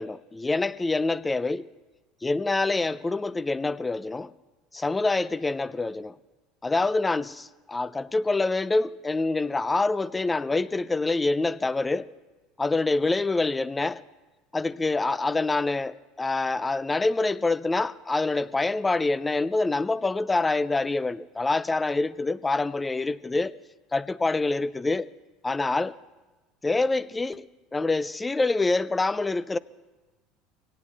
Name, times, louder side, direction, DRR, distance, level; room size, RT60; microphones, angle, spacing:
voice 1, 0.0-1.7 2.2-4.3 4.7-6.1 6.6-12.1 12.6-14.0 14.5-23.5 23.9-25.1 25.4-26.0 26.6-29.6, left 3 dB, 15° left, 0.5 m, -26 dB
23.0 x 18.0 x 3.4 m
hypercardioid pair, 90°, 0 cm